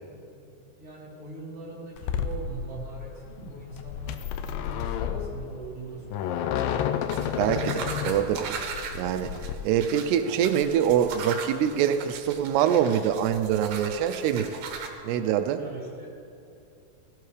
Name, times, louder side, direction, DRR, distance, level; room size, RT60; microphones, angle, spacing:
voice 1, 0.0-6.5 15.5-16.2, right 3 dB, 30° right, -4 dB, 3.9 m, -42 dB
sound 1, 2.0-9.5, left 9 dB, 90° left, 2.0 m, -31 dB
sound 2, 7.1-14.9, right 5 dB, 70° right, 2.9 m, -38 dB
voice 2, 7.3-8.6 8.9-9.3 9.6-14.6 15.0-15.6, right 9 dB, 90° right, 8 dB, 2.7 m, -24 dB
17.5 x 16.5 x 3.3 m, 2.7 s
omnidirectional pair, 4.6 m